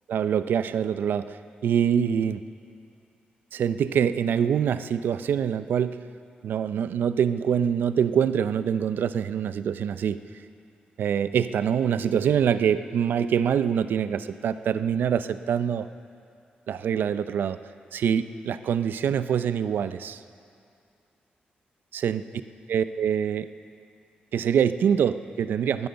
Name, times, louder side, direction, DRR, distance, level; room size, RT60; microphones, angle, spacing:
voice 1, 0.1-1.4 1.6-2.4 3.5-6.0 6.4-10.2 11.0-15.9 16.7-17.6 17.9-20.2 21.9-22.2 22.7-23.5 24.3-25.9, right 8 dB, 80° right, 13 dB, 0.5 m, -25 dB
19.5 x 9.3 x 6.9 m, 2.5 s
cardioid pair, 100°, 3 cm